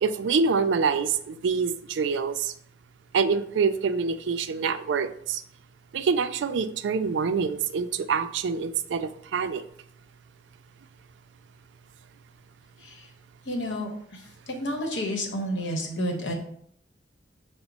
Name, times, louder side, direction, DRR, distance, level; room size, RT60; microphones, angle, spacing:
voice 1, 0.0-2.5 3.1-5.4 5.9-9.6, right 5 dB, 75° right, 10 dB, 0.3 m, -26 dB
voice 2, 13.5-14.2 14.6-16.3, equal, 85° left, 3 dB, 0.9 m, -30 dB
5.9 x 2.0 x 4.0 m, 0.66 s
head